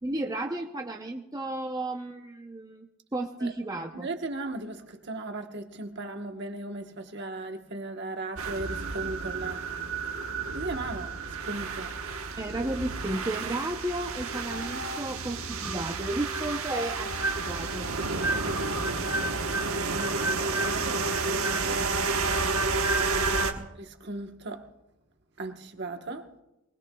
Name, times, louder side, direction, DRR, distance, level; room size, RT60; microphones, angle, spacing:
voice 1, 0.0-4.1 12.4-17.9, right 2 dB, 15° right, 0.6 m, -33 dB
voice 2, 3.9-9.6 10.5-11.9 18.4-19.0 19.9-21.8 23.8-24.6 25.4-26.3, right 2 dB, 55° right, 1.2 m, -37 dB
sound 1, 8.4-23.5, right 3 dB, 85° right, 1.2 m, -30 dB
22.5 x 20.0 x 2.3 m
head